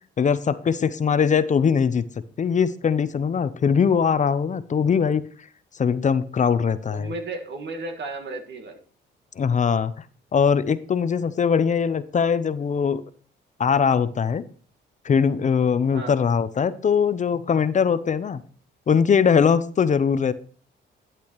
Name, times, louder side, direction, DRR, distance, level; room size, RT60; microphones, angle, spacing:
voice 1, 0.2-2.0 2.4-5.2 5.8-7.1 9.4-9.9 10.3-13.0 13.6-14.4 15.0-18.4 18.9-20.3, left 6 dB, 40° left, 14 dB, 0.6 m, -21 dB
voice 2, 6.9-8.8 15.9-16.1 20.1-20.3, right 2 dB, 65° right, 5 dB, 1.8 m, -34 dB
12.0 x 8.4 x 3.0 m, 0.42 s
cardioid pair, 90°, 20 cm